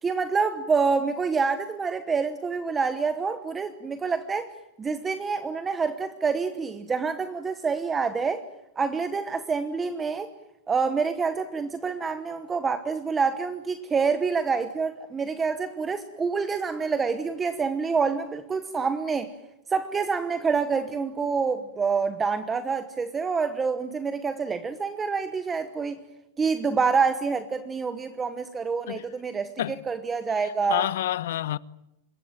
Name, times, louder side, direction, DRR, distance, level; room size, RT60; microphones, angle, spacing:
voice 1, 0.0-4.5 4.8-8.4 8.8-10.3 10.7-19.3 19.7-26.0 26.4-29.5 29.9-30.8, right 5 dB, 15° right, 1.1 m, -27 dB
voice 2, 30.4-31.6, left 13 dB, 70° left, 0.9 m, -28 dB
26.0 x 22.0 x 9.0 m
supercardioid pair, 160°, 0 cm